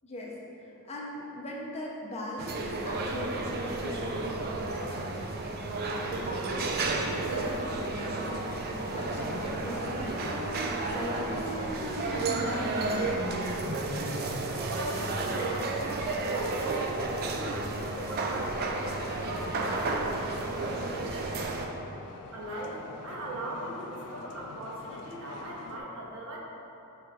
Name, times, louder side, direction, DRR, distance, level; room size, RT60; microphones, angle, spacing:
voice 1, 0.0-13.7, left 1 dB, 30° left, -3 dB, 0.5 m, -40 dB
sound 1, 2.4-21.7, right 3 dB, 45° right, 0.3 m, -32 dB
sound 2, 6.0-25.8, left 4 dB, 85° left, 0.3 m, -45 dB
sound 3, 8.9-14.9, equal, 90° right, 1.0 m, -39 dB
voice 2, 14.7-18.7 19.1-21.4 22.3-26.4, right 1 dB, 65° right, -4 dB, 0.8 m, -40 dB
5.4 x 3.8 x 2.4 m, 3.0 s
head